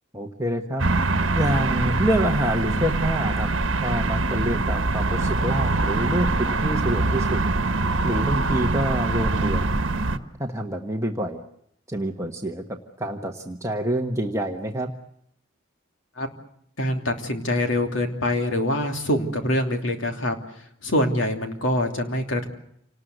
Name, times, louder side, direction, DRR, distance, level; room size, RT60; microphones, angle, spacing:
voice 1, 0.1-0.8 1.3-3.5 3.8-7.4 8.0-9.8 10.4-11.4 11.9-14.9, right 1 dB, 15° right, 2 dB, 1.3 m, -27 dB
sound 1, 0.8-10.2, right 3 dB, 65° right, 1.4 m, -23 dB
voice 2, 16.8-22.5, left 1 dB, 65° left, 4 dB, 3.1 m, -25 dB
28.0 x 19.5 x 7.9 m, 0.73 s
head